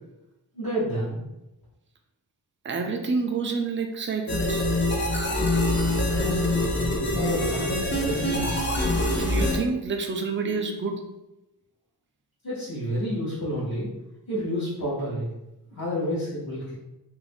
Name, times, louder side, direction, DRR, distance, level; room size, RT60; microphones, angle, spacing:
voice 1, 0.5-1.2 6.0-8.5 12.4-13.9 14.3-15.3 15.7-16.8, equal, 55° left, -9 dB, 0.9 m, -30 dB
voice 2, 2.6-4.6 9.2-11.0, right 4 dB, 30° right, 3 dB, 0.3 m, -28 dB
sound 1, 4.3-9.6, left 1 dB, 25° left, 0.5 m, -24 dB
2.4 x 2.0 x 3.4 m, 0.96 s
wide cardioid pair, 80°, 43 cm